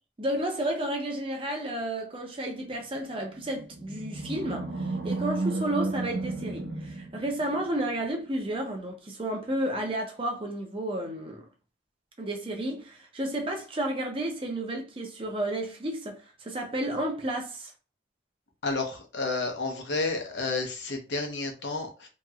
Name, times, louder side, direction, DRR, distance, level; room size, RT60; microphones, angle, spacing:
voice 1, 0.2-11.4 12.2-17.7, right 1 dB, 30° right, 0.6 m, -32 dB
Animal, 3.3-7.8, right 2 dB, 70° right, 0.8 m, -33 dB
voice 2, 18.6-22.1, left 3 dB, 70° left, 0.9 m, -31 dB
2.9 x 2.9 x 2.4 m
head